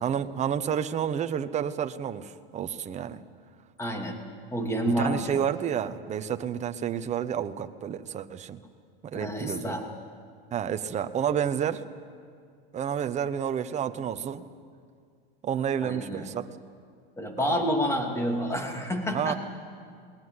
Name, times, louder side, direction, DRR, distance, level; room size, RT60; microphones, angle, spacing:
voice 1, 0.0-3.2 5.0-8.6 9.0-9.8 10.5-11.8 12.7-14.4 15.4-16.5 17.4-17.5 19.1-19.3, right 8 dB, 25° right, 9 dB, 1.0 m, -30 dB
voice 2, 3.8-4.2 4.5-5.3 9.1-9.8 15.8-16.3 17.2-19.3, equal, 10° left, 3 dB, 2.7 m, -29 dB
21.0 x 19.5 x 9.7 m, 2.1 s
supercardioid pair, 130°, 30 cm